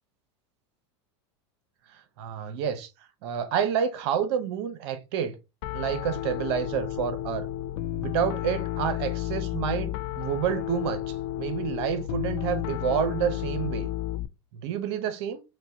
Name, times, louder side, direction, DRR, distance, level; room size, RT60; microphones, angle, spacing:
voice 1, 2.2-2.9 3.2-5.4 5.7-7.5 8.0-11.0 11.4-13.9 14.5-15.4, right 8 dB, 65° right, 0.7 m, -29 dB
Piano, 5.6-14.3, left 13 dB, 60° left, 0.4 m, -32 dB
4.4 x 2.1 x 2.6 m
hypercardioid pair, 110°, 15 cm